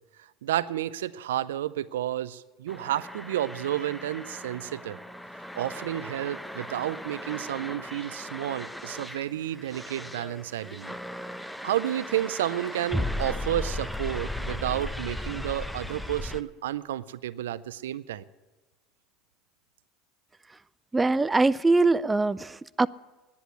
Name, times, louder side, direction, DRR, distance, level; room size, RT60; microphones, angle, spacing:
voice 1, 0.4-5.0 5.6-10.9 11.6-18.2, right 12 dB, 80° right, 17 dB, 0.4 m, -31 dB
sound 1, 2.7-16.4, left 1 dB, 5° left, 0.7 m, -36 dB
voice 2, 20.9-22.9, right 3 dB, 15° right, 17 dB, 0.3 m, -22 dB
10.5 x 9.8 x 9.4 m, 1.2 s
hypercardioid pair, 80°, 0 cm